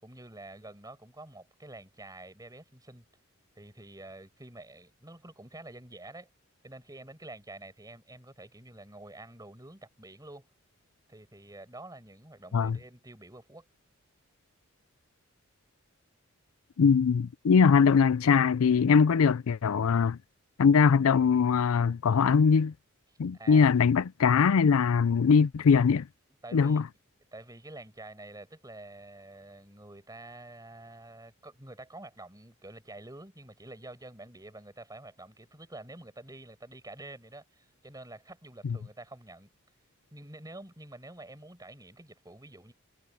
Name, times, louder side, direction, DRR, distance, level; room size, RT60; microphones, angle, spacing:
voice 1, 0.0-3.1 3.6-6.3 6.6-10.5 11.1-13.7 23.3-23.7 26.4-26.8 27.3-39.5 40.1-42.7, right 2 dB, 15° right, 5.7 m, -48 dB
voice 2, 16.8-20.2 20.6-22.7 23.2-26.1 26.5-26.8, left 6 dB, 80° left, 0.4 m, -22 dB
head